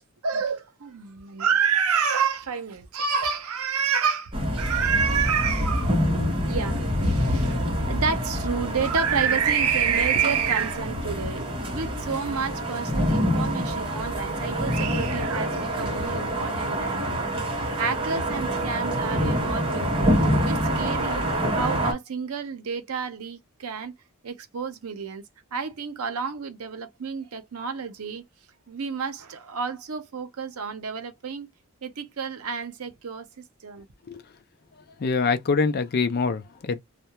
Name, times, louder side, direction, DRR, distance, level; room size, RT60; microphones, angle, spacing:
voice 1, 0.2-6.1 6.5-23.9 24.2-25.2 25.5-28.2 28.7-31.5 31.8-33.3 33.6-33.9, right 6 dB, 75° right, 0.6 m, -29 dB
sound 1, 4.3-21.9, equal, 25° right, 0.7 m, -26 dB
voice 2, 35.0-36.8, left 4 dB, 45° left, 0.4 m, -24 dB
2.3 x 2.1 x 2.8 m
head